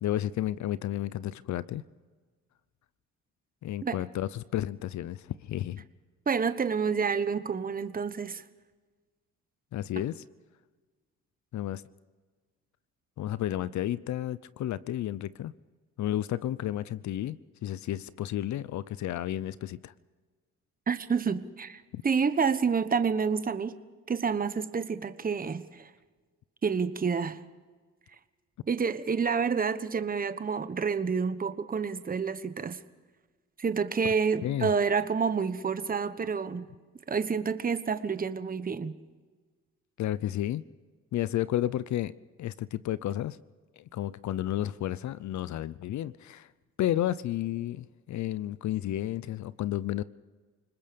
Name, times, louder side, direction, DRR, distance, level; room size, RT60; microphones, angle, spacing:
voice 1, 0.0-1.8 3.6-5.8 9.7-10.2 11.5-11.8 13.2-15.5 16.0-19.9 21.9-22.0 34.4-34.7 40.0-40.6 41.1-42.1 42.4-43.4 43.8-46.5 46.8-50.0, left 13 dB, 70° left, 17 dB, 0.7 m, -32 dB
voice 2, 6.3-8.4 10.0-10.1 20.9-23.8 24.1-25.9 26.6-27.4 28.7-32.8 33.6-36.7 37.1-38.9, right 5 dB, 30° right, 11 dB, 1.2 m, -29 dB
29.0 x 20.0 x 5.3 m, 1.4 s
cardioid pair, 90°, 30 cm